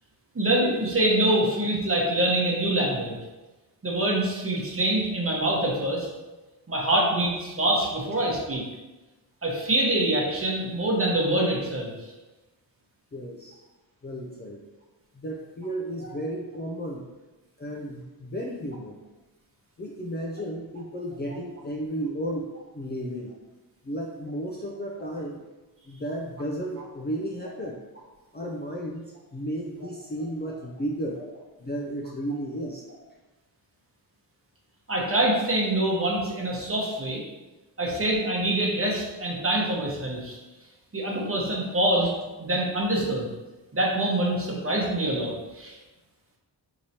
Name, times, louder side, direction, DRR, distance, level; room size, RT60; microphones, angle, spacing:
voice 1, 0.3-3.2 3.8-6.1 6.7-8.6 9.4-11.9 34.9-37.2 37.8-40.4 40.9-42.1 42.4-43.3 43.7-45.8, right 1 dB, 30° right, -2 dB, 1.0 m, -25 dB
voice 2, 13.1-13.6 14.0-14.6 15.1-17.1 17.6-19.0 19.8-23.3 23.8-25.4 25.8-27.8 28.3-31.2 31.6-32.9, right 1 dB, 25° left, -1 dB, 0.4 m, -33 dB
4.6 x 2.9 x 2.8 m, 1.1 s
wide cardioid pair, 85°, 42 cm